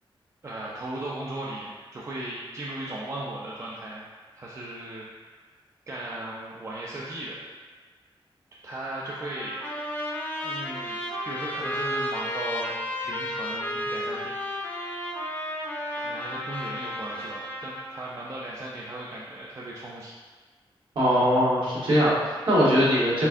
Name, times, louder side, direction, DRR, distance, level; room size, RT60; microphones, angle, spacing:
voice 1, 0.4-4.0 4.3-5.4 5.9-7.4 8.6-9.6 10.4-12.7 13.0-14.4 16.0-20.1, right 1 dB, 35° right, -5 dB, 0.4 m, -37 dB
Trumpet, 9.1-18.0, left 1 dB, 15° left, 0.5 m, -33 dB
voice 2, 20.9-23.3, equal, 60° right, -8 dB, 1.3 m, -21 dB
4.3 x 3.4 x 2.5 m, 1.4 s
wide cardioid pair, 170°, 9 cm